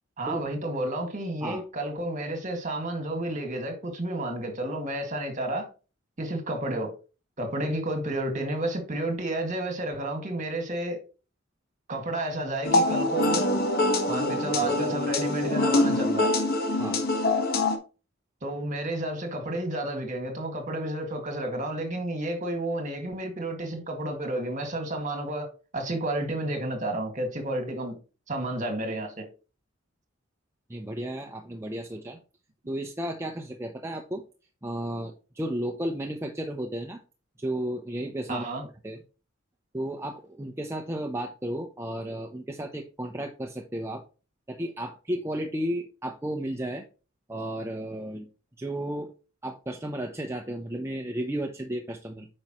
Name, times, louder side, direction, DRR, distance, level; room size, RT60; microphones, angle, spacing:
voice 1, 0.2-5.7 6.2-6.9 7.4-11.0 11.9-13.5 14.1-16.3 18.4-28.0 28.3-29.2 38.3-38.6, right 1 dB, 40° right, 2.0 m, -31 dB
sound 1, 12.6-17.8, left 2 dB, 50° left, 1.4 m, -24 dB
voice 2, 30.7-32.2 32.7-34.2 34.6-37.0 37.4-38.4 38.8-39.0 39.7-44.0 44.5-46.8 47.3-48.3 48.6-49.1 49.4-52.3, right 1 dB, 15° right, 0.7 m, -33 dB
8.8 x 5.4 x 3.0 m
head